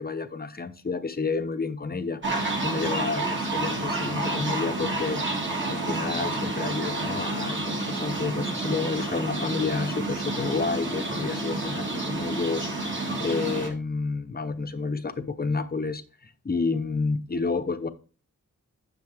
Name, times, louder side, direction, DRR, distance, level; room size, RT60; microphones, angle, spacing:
voice 1, 0.0-2.2 2.6-17.9, left 4 dB, 30° left, 0.7 m, -30 dB
sound 1, 2.2-13.7, right 2 dB, 35° right, 2.0 m, -29 dB
9.8 x 6.6 x 3.4 m
wide cardioid pair, 115°, 32 cm